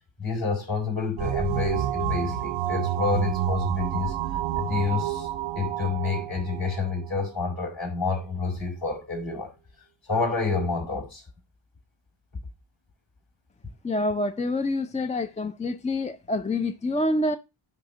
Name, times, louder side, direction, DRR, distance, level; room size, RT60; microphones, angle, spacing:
voice 1, 0.2-4.1 4.5-5.3 5.5-9.5 10.1-11.2, left 4 dB, 50° left, 4.8 m, -28 dB
sound 1, 1.2-7.6, right 12 dB, 80° right, 0.7 m, -29 dB
voice 2, 13.8-17.4, left 2 dB, 15° left, 0.5 m, -27 dB
10.5 x 3.6 x 4.0 m
cardioid pair, 90°, 46 cm